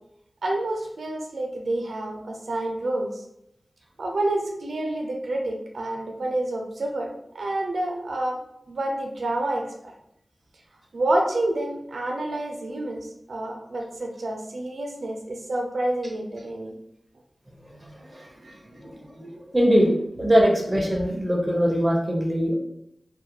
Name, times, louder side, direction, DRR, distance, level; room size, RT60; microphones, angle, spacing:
voice 1, 0.4-3.1 4.0-7.1 7.3-8.4 8.7-9.6 10.9-16.7 18.4-18.6, right 1 dB, 80° right, 1 dB, 0.4 m, -28 dB
voice 2, 18.8-19.9 20.2-22.5, equal, 20° right, -1 dB, 0.6 m, -21 dB
2.3 x 2.1 x 2.8 m, 0.79 s
wide cardioid pair, 95°, 0 cm